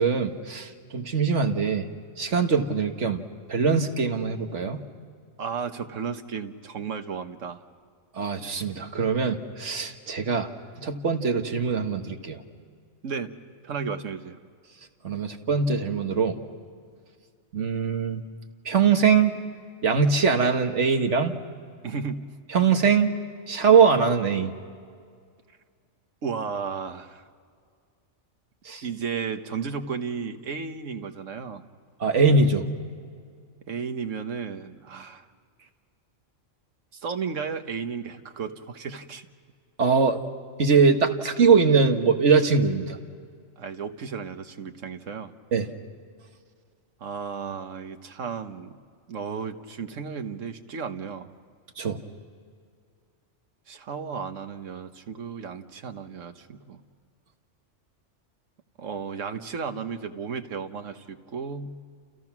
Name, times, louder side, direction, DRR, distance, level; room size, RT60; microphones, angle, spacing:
voice 1, 0.0-1.9 2.2-3.2 3.5-4.8 8.1-10.5 10.8-12.4 15.0-16.4 17.5-18.2 18.7-19.4 19.8-21.4 22.5-23.1 23.5-24.5 28.7-28.8 32.0-32.7 39.8-40.2 40.6-43.0 45.5-45.7 51.8-52.0, right 5 dB, 70° right, 5 dB, 1.8 m, -22 dB
voice 2, 5.4-7.6 13.0-13.3 13.6-14.4 21.8-22.3 26.2-27.2 28.8-31.7 33.7-35.2 36.9-39.3 43.6-45.3 47.0-48.8 49.1-51.3 53.7-56.8 58.8-61.8, right 6 dB, 85° right, 8 dB, 1.5 m, -34 dB
30.0 x 29.5 x 6.1 m, 2.1 s
omnidirectional pair, 1.3 m